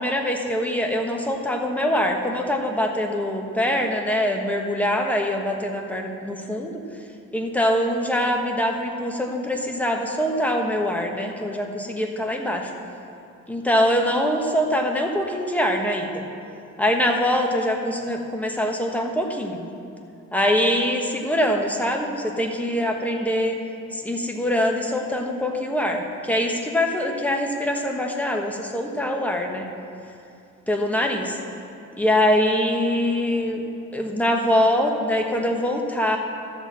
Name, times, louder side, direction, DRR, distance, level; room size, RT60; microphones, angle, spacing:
voice 1, 0.0-6.8 7.3-12.7 13.5-16.2 16.8-19.7 20.3-23.6 23.9-29.7 30.7-31.3 32.0-33.6 33.9-36.2, left 1 dB, 5° left, 2 dB, 1.2 m, -23 dB
12.5 x 4.3 x 7.3 m, 2.6 s
cardioid pair, 90°, 30 cm